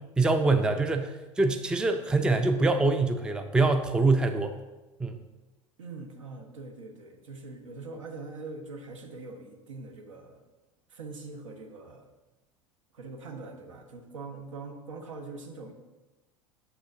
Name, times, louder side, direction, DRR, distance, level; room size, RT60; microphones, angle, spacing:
voice 1, 0.2-4.5 5.0-5.2, right 3 dB, 5° right, 7 dB, 0.4 m, -24 dB
voice 2, 5.8-10.4 10.9-12.1 12.9-15.7, right 3 dB, 75° right, 4 dB, 1.0 m, -43 dB
7.1 x 6.1 x 2.6 m, 1.1 s
figure-of-eight pair, 80°, 17 cm